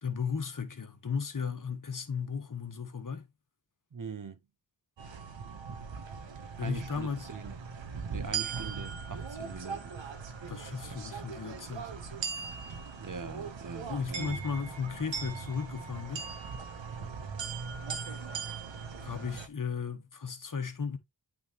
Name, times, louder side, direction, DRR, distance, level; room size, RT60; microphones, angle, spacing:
voice 1, 0.0-3.3 6.6-7.3 10.5-11.9 13.9-16.3 19.0-21.0, left 6 dB, 45° left, 1.4 m, -35 dB
voice 2, 3.9-4.4 6.6-7.6 8.1-9.9 10.9-11.0 13.0-14.4, right 5 dB, 45° right, 0.9 m, -42 dB
sound 1, 5.0-19.5, right 5 dB, 90° right, 1.1 m, -39 dB
8.6 x 3.9 x 3.0 m
cardioid pair, 40°, 44 cm